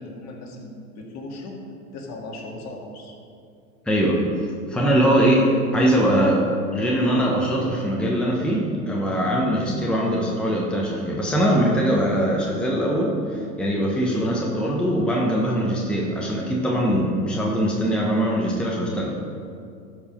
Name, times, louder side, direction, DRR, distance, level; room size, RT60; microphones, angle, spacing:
voice 1, 0.0-1.6 1.9-3.2, left 2 dB, 40° left, 0 dB, 2.0 m, -37 dB
voice 2, 3.9-19.2, equal, ahead, -3 dB, 1.2 m, -22 dB
13.0 x 4.9 x 5.2 m, 2.4 s
hypercardioid pair, 95°, 43 cm